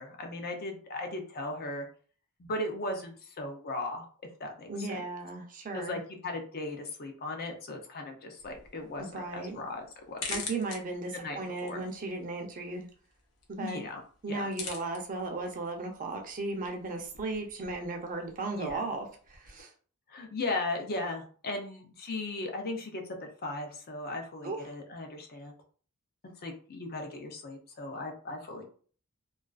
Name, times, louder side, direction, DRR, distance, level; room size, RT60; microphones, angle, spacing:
voice 1, 0.0-1.9 2.4-4.1 4.4-5.0 5.7-10.2 11.1-11.8 13.6-14.0 14.3-14.5 18.5-18.8 20.1-25.5 26.4-28.6, left 2 dB, 45° left, 3 dB, 0.5 m, -37 dB
voice 2, 4.7-6.0 9.0-9.6 10.3-12.9 13.5-13.9 14.2-19.7 24.4-24.6, right 3 dB, 40° right, 3 dB, 0.5 m, -36 dB
sound 1, 8.4-19.6, left 4 dB, 85° left, 0.6 m, -46 dB
2.3 x 2.3 x 2.3 m, 0.43 s
head